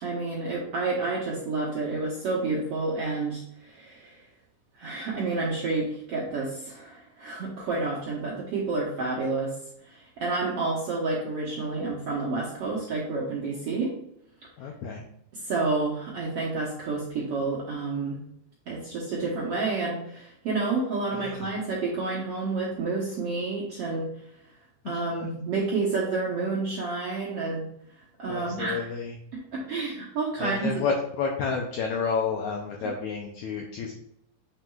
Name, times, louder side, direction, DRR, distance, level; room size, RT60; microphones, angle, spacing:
voice 1, 0.0-4.2 4.7-9.5 9.8-13.9 15.3-18.2 18.7-24.1 24.8-27.6 27.9-28.9 29.3-30.7, right 3 dB, 85° right, -4 dB, 1.3 m, -29 dB
voice 2, 14.6-15.0 21.1-21.5 24.9-25.0 28.3-29.1 30.4-33.9, left 5 dB, 85° left, 2 dB, 1.6 m, -30 dB
7.4 x 6.1 x 2.4 m, 0.74 s
omnidirectional pair, 4.2 m